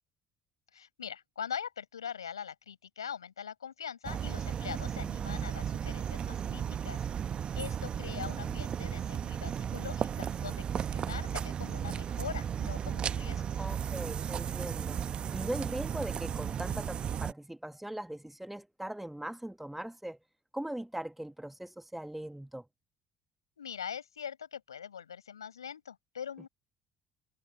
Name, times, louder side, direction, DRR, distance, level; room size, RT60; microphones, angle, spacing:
voice 1, 0.7-7.1 7.6-13.6 23.6-26.5, left 8 dB, 80° left, 7.5 m, -42 dB
sound 1, 4.0-17.3, right 8 dB, 45° right, 1.2 m, -35 dB
voice 2, 13.6-15.0 15.3-20.2 20.5-22.7, right 1 dB, 5° right, 1.8 m, -40 dB
figure-of-eight pair, 55°, 2 cm